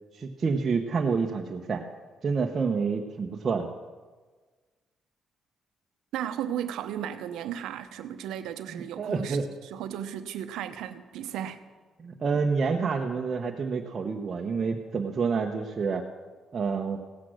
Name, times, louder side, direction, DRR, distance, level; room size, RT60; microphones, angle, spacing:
voice 1, 0.1-1.8 2.2-3.7 8.7-9.4 12.0-16.0 16.5-17.0, right 5 dB, 40° right, 1 dB, 1.0 m, -28 dB
voice 2, 6.1-11.6, right 10 dB, 85° right, 10 dB, 0.8 m, -35 dB
17.0 x 8.4 x 6.3 m, 1.4 s
cardioid pair, 90°, 0 cm